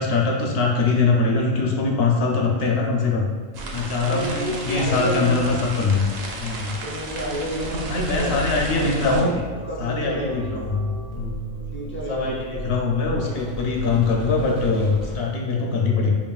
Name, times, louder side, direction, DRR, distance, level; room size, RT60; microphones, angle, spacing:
voice 1, 0.0-3.3 3.7-6.1 6.4-6.7 7.9-9.4 9.8-11.3 12.1-16.1, left 3 dB, 65° left, -1 dB, 0.7 m, -22 dB
voice 2, 3.5-5.6 6.8-9.3 9.6-10.5 11.7-12.7 13.2-13.5, equal, 15° left, -5 dB, 0.4 m, -31 dB
sound 1, 3.5-9.2, right 2 dB, 55° right, 0.4 m, -32 dB
sound 2, 8.0-15.2, right 2 dB, 90° right, 1.2 m, -35 dB
4.6 x 3.0 x 2.3 m, 1.5 s
omnidirectional pair, 1.2 m